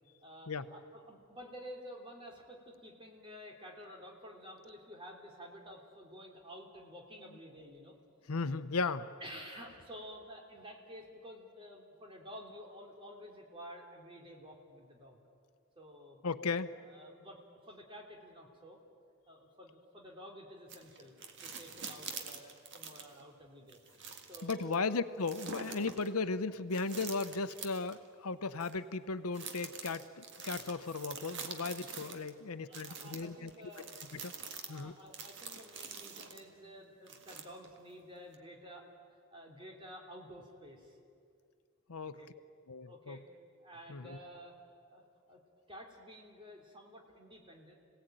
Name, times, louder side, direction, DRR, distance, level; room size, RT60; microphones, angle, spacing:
voice 1, 0.2-8.0 9.2-15.2 15.7-16.2 16.7-18.8 19.3-23.8 24.3-24.8 32.4-33.9 34.5-41.0 42.0-42.3 42.8-43.2 43.6-44.6 44.9-45.4 45.7-47.7, equal, 25° right, 1 dB, 3.1 m, -51 dB
voice 2, 8.3-9.1 16.2-16.7 24.4-33.5 34.1-34.3 34.7-34.9 41.9-42.3 42.7-43.2 43.9-44.2, left 4 dB, 85° left, 12 dB, 0.8 m, -36 dB
sound 1, 20.7-23.2 23.7-24.7 25.2-26.1 26.7-28.0 28.6-28.7 29.3-32.3 32.7-36.4 37.1-37.8 38.3-38.4, right 5 dB, 55° right, 1.9 m, -46 dB
27.0 x 17.5 x 9.1 m, 2.4 s
head